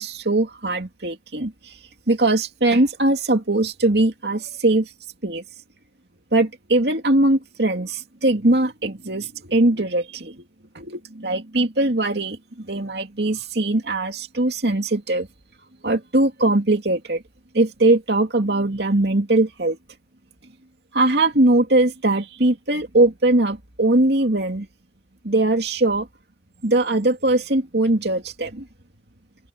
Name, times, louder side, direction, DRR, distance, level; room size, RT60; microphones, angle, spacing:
voice 1, 0.0-1.5 2.1-4.9 5.2-5.4 6.3-10.3 10.7-15.3 15.8-17.2 17.5-19.8 20.9-24.7 25.2-26.1 26.6-28.6, right 2 dB, 75° right, 2.5 m, -20 dB
head